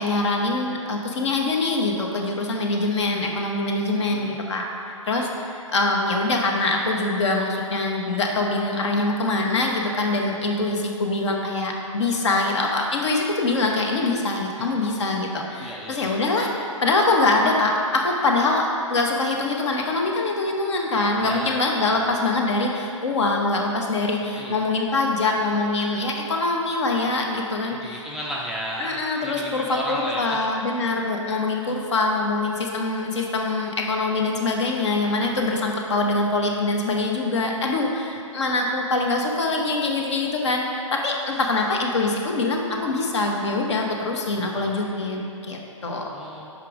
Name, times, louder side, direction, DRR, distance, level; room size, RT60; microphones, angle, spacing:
voice 1, 0.0-4.7 5.1-28.1 28.8-46.1, left 2 dB, 60° left, 1 dB, 1.0 m, -24 dB
voice 2, 15.6-16.2 21.2-22.1 24.4-24.6 27.7-30.4 31.6-31.7 44.3-44.7 45.1-45.2 45.8-46.6, equal, 5° right, -5 dB, 0.4 m, -35 dB
5.7 x 5.1 x 4.8 m, 2.5 s
figure-of-eight pair, 130°, 17 cm